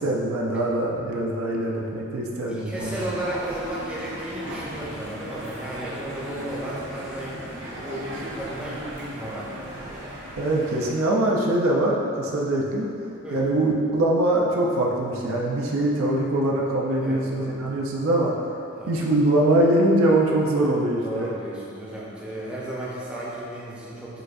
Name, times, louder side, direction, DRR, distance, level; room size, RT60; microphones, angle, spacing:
voice 1, 0.0-3.0 10.4-12.9 13.3-18.3 18.9-21.3, right 1 dB, 85° right, -2 dB, 0.5 m, -23 dB
voice 2, 2.5-9.8 13.2-13.5 17.0-17.6 18.7-18.9 21.0-24.2, right 1 dB, 5° right, -7 dB, 0.5 m, -34 dB
sound 1, 2.7-10.9, right 1 dB, 55° right, 1.1 m, -37 dB
6.4 x 2.5 x 2.5 m, 2.7 s
head